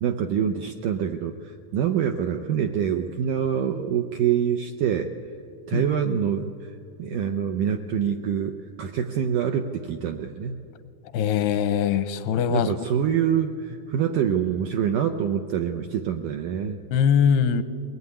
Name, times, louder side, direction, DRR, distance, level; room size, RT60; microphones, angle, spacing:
voice 1, 0.0-5.1 5.7-10.7 12.5-16.8, right 8 dB, 80° right, 5 dB, 1.9 m, -26 dB
voice 2, 11.1-12.7 16.9-17.6, left 8 dB, 85° left, 12 dB, 2.8 m, -21 dB
22.0 x 19.5 x 9.7 m, 2.4 s
omnidirectional pair, 4.7 m